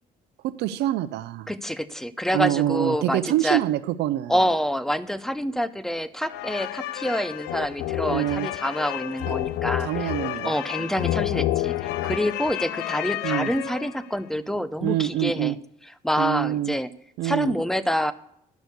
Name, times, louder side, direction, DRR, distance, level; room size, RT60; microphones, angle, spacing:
voice 1, 0.4-1.5 2.3-4.4 8.0-8.5 9.3-9.4 9.8-11.1 13.2-13.5 14.8-15.5 16.2-16.8 17.2-17.5, right 14 dB, 80° right, 12 dB, 0.6 m, -26 dB
voice 2, 1.5-3.6 4.3-10.1 10.4-15.6 16.0-16.9 17.2-18.1, equal, ahead, 14 dB, 0.6 m, -27 dB
sound 1, 6.3-14.1, left 14 dB, 85° left, 0.5 m, -29 dB
11.5 x 6.3 x 8.2 m, 0.72 s
cardioid pair, 110°, 17 cm